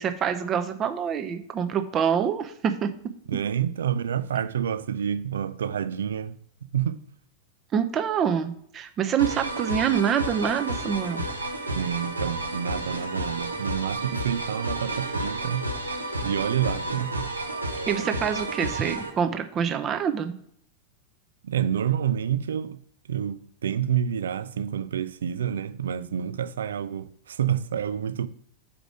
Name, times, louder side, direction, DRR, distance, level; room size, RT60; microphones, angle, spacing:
voice 1, 0.0-2.9 7.7-11.2 17.8-20.3, right 8 dB, 30° right, 0.7 m, -26 dB
voice 2, 3.3-6.4 6.7-7.0 11.7-15.7 16.2-17.3 21.4-22.8 23.1-28.3, right 9 dB, 65° right, 0.4 m, -28 dB
sound 1, 9.2-19.1, right 1 dB, 85° right, 0.9 m, -31 dB
5.0 x 4.9 x 6.2 m
figure-of-eight pair, 90°, 0 cm